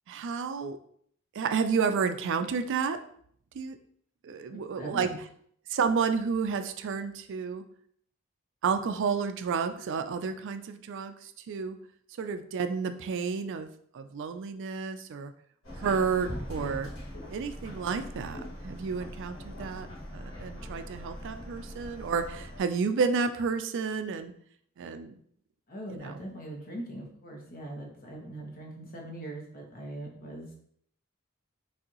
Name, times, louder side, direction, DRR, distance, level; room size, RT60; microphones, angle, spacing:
voice 1, 0.1-0.8 1.3-3.0 3.5-3.8 4.2-5.1 5.7-7.6 8.6-11.8 12.2-15.3 15.7-16.9 17.3-19.9 20.1-24.3 24.8-25.2 25.9-26.1, right 5 dB, 60° right, 9 dB, 0.4 m, -31 dB
voice 2, 4.5-5.2 25.7-30.5, right 1 dB, 45° left, 0 dB, 1.1 m, -41 dB
Subway metro underground, 15.6-22.6, equal, 70° left, 1.7 m, -41 dB
6.2 x 2.7 x 2.9 m, 0.65 s
head